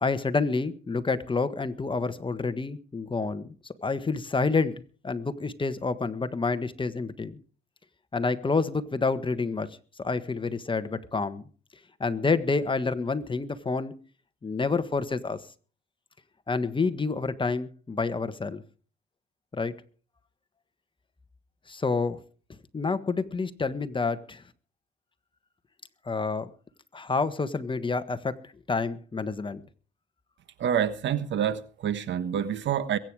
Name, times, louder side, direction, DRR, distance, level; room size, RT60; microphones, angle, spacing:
voice 1, 0.0-7.4 8.1-11.4 12.0-13.9 14.4-15.4 16.5-18.6 19.5-19.7 21.7-22.2 22.7-24.4 26.0-26.5 26.9-29.6, left 4 dB, 25° left, 1.4 m, -28 dB
voice 2, 30.6-33.0, right 9 dB, 70° right, 1.3 m, -27 dB
22.5 x 9.0 x 4.8 m
cardioid pair, 90°, 20 cm